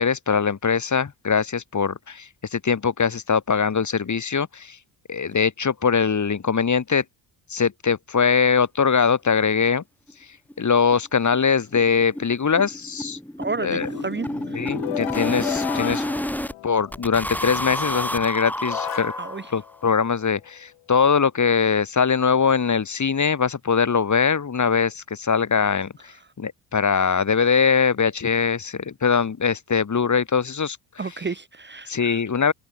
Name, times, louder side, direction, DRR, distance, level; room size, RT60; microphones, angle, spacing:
voice 1, 0.0-4.8 5.1-7.0 7.5-9.8 10.6-13.2 13.6-13.9 14.5-16.1 16.6-19.1 19.5-25.9 26.4-30.8 31.9-32.5, left 6 dB, 40° left, 3.2 m, -22 dB
sound 1, 9.7-9.8 10.1-10.2 10.5-10.6 10.9-11.1 11.3-16.5 16.9-19.7, equal, 5° left, 4.1 m, -30 dB
voice 2, 13.4-14.7 19.2-19.5 31.0-32.2, right 4 dB, 25° right, 1.2 m, -32 dB
sound 2, 13.5-17.3 18.1-18.2 18.6-20.5, left 17 dB, 80° left, 5.6 m, -34 dB
supercardioid pair, 60°, 47 cm